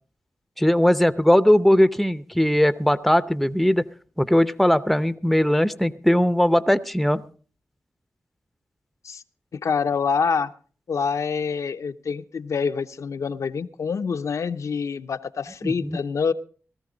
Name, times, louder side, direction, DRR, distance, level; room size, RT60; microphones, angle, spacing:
voice 1, 0.6-3.9 4.2-7.2 15.6-16.0, equal, ahead, 13 dB, 0.6 m, -19 dB
voice 2, 9.5-10.5 10.9-16.3, left 5 dB, 75° left, 8 dB, 0.7 m, -26 dB
17.5 x 13.5 x 3.9 m, 0.41 s
wide cardioid pair, 70°, 5 cm